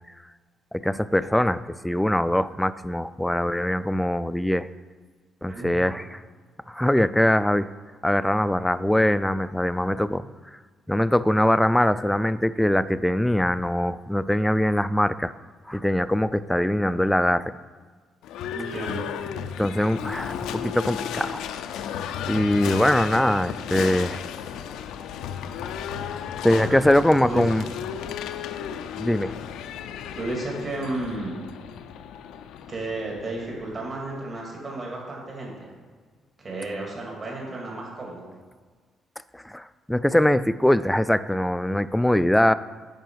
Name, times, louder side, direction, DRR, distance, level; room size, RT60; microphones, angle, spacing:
voice 1, 0.7-4.7 5.4-6.2 6.7-7.7 8.0-10.2 10.9-15.3 15.7-17.5 19.6-21.4 22.3-24.2 26.4-27.7 29.0-29.4 39.3-42.5, left 1 dB, 5° left, 14 dB, 0.3 m, -22 dB
voice 2, 5.5-6.0 18.5-19.1 26.6-26.8 27.2-27.4 30.1-31.4 32.7-35.7 36.4-38.3, right 2 dB, 40° right, -2 dB, 2.3 m, -33 dB
Livestock farm animals working animals / Bell, 18.2-34.1, left 8 dB, 90° left, 0.4 m, -34 dB
9.1 x 5.5 x 4.6 m, 1.5 s
cardioid pair, 90°, 0 cm